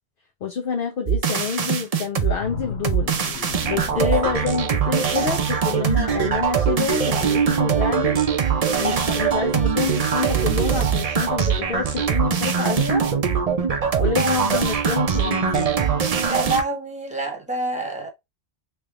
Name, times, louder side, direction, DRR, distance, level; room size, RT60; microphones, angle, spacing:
voice 1, 0.4-3.1 3.6-8.2 8.8-13.1 14.0-15.7, left 6 dB, 60° left, 0.9 m, -27 dB
sound 1, 1.1-2.3 2.8-16.6, right 7 dB, 45° right, 0.6 m, -22 dB
sound 2, 2.4-6.0 6.4-6.6, left 4 dB, 80° left, 1.5 m, -36 dB
voice 2, 16.3-18.1, right 2 dB, 5° right, 1.1 m, -27 dB
3.4 x 3.3 x 2.4 m
omnidirectional pair, 1.1 m